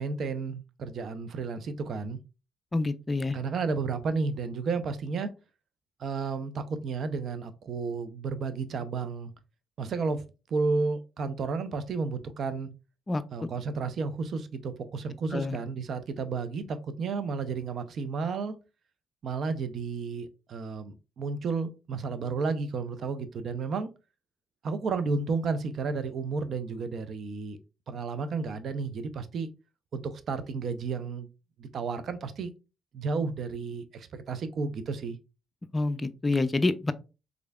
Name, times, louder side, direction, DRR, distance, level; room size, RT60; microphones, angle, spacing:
voice 1, 0.0-2.2 3.3-5.3 6.0-9.3 9.8-10.2 10.5-12.7 13.3-18.5 19.2-23.9 24.6-27.6 27.9-29.5 29.9-31.3 31.6-32.5 32.9-35.2, right 4 dB, 60° right, 0.5 m, -32 dB
voice 2, 2.7-3.4 13.1-13.2 15.3-15.6 35.7-36.9, left 2 dB, 25° left, 0.4 m, -27 dB
3.7 x 3.3 x 2.3 m
supercardioid pair, 70°, 0 cm